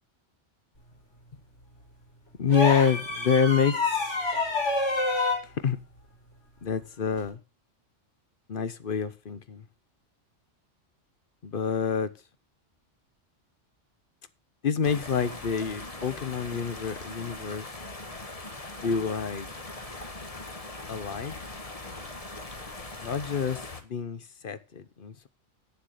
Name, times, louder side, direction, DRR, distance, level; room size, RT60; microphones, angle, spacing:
voice 1, 2.4-4.2 5.4-5.8 6.6-7.4 8.5-9.6 11.4-12.1 14.6-17.7 18.8-19.5 20.9-21.4 23.0-25.3, left 6 dB, 50° left, 0.9 m, -27 dB
sound 1, 2.5-5.5 7.1-7.3, left 3 dB, 75° left, 5.2 m, -27 dB
sound 2, 14.8-23.8, left 2 dB, 30° left, 1.5 m, -40 dB
9.4 x 7.3 x 6.4 m
omnidirectional pair, 1.2 m